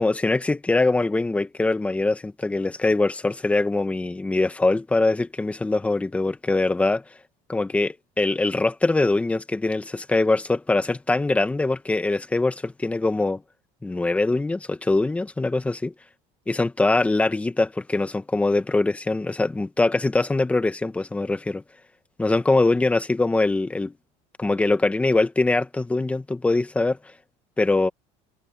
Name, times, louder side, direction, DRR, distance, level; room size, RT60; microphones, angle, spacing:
voice 1, 0.0-7.0 7.5-13.4 13.8-15.9 16.5-21.6 22.2-23.9 24.4-27.0 27.6-27.9, left 2 dB, 10° left, 1.4 m, -23 dB
cardioid pair, 135°, 14 cm